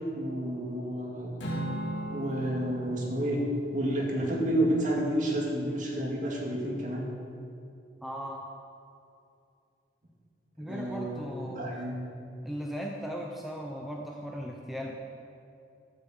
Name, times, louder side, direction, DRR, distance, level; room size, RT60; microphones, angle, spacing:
voice 1, 0.1-1.4 2.1-3.4 3.7-7.1 10.6-12.0, right 1 dB, 45° right, -1 dB, 2.3 m, -30 dB
Acoustic guitar / Strum, 1.4-5.8, right 1 dB, 80° left, 2.5 m, -39 dB
voice 2, 8.0-8.4 10.6-11.8 12.4-14.9, equal, ahead, -1 dB, 0.7 m, -37 dB
13.0 x 7.7 x 7.6 m, 2.6 s
head